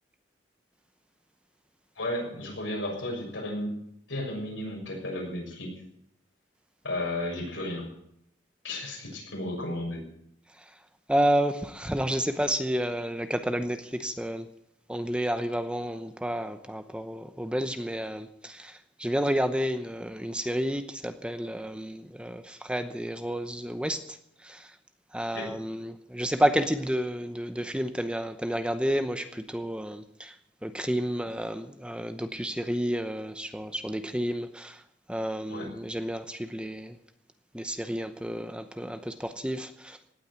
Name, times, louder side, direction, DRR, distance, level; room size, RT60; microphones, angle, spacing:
voice 1, 1.9-3.7 4.1-5.7 6.8-7.9 8.6-10.0 25.3-25.5 35.5-35.7, left 1 dB, 80° left, 0 dB, 6.6 m, -33 dB
voice 2, 11.1-14.5 14.9-24.8 25.1-30.4 30.6-34.8 35.1-37.0 37.5-40.0, equal, 5° right, 9 dB, 0.8 m, -30 dB
17.5 x 8.9 x 8.1 m, 0.72 s
head